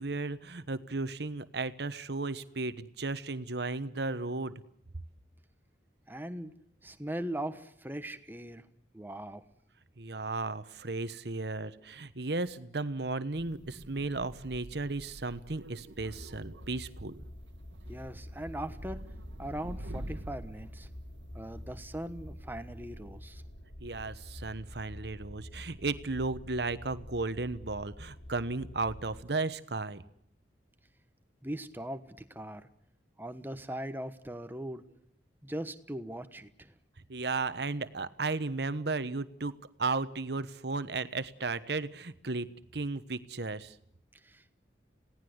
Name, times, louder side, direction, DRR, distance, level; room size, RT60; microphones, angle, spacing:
voice 1, 0.0-4.5 10.0-17.2 23.8-30.0 37.1-43.8, right 3 dB, 65° right, 13 dB, 1.1 m, -35 dB
voice 2, 6.1-6.5 6.8-8.6 8.9-9.4 17.9-19.0 19.4-20.9 21.3-23.4 31.4-32.7 33.2-35.0 35.4-36.7 44.2-44.6, right 1 dB, 10° right, 10 dB, 1.2 m, -40 dB
sound 1, 13.3-22.9, right 1 dB, 85° right, 1.6 m, -47 dB
sound 2, 16.0-29.2, left 1 dB, 70° left, 3.0 m, -47 dB
27.0 x 17.5 x 8.0 m, 0.71 s
head